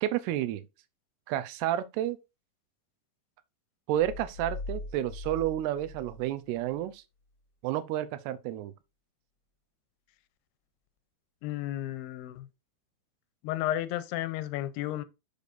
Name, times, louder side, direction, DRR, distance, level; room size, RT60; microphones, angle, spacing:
voice 1, 0.0-0.6 1.3-2.2 3.9-7.0 7.6-8.7, right 12 dB, 85° right, 2.7 m, -30 dB
sound 1, 4.0-6.9, left 2 dB, 45° left, 1.4 m, -41 dB
voice 2, 11.4-12.5 13.4-15.0, left 13 dB, 85° left, 2.6 m, -33 dB
6.9 x 6.5 x 2.5 m
omnidirectional pair, 4.6 m